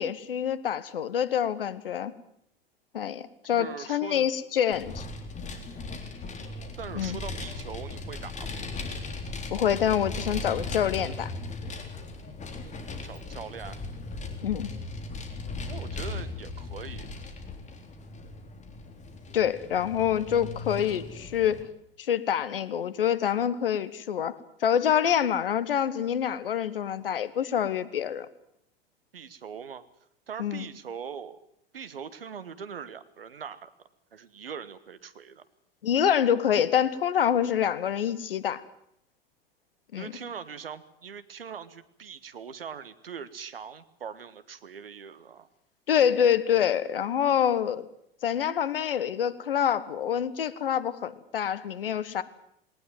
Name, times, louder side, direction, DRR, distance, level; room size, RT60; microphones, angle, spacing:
voice 1, 0.0-2.1 2.9-5.0 6.9-7.2 9.5-11.3 14.4-14.7 19.3-21.6 22.0-24.3 24.6-28.3 30.4-30.6 35.8-38.6 39.9-40.1 45.9-47.8 48.2-52.2, left 9 dB, 70° left, 17 dB, 1.4 m, -26 dB
voice 2, 3.5-4.3 6.8-8.7 13.0-13.8 15.7-17.1 29.1-29.8 30.3-31.4 31.7-33.7 34.1-35.4 40.0-45.5, right 7 dB, 75° right, 14 dB, 1.5 m, -41 dB
Vehicle, 4.7-21.6, left 3 dB, 25° left, 3.6 m, -38 dB
20.5 x 18.5 x 9.3 m, 0.75 s
figure-of-eight pair, 80°, 29 cm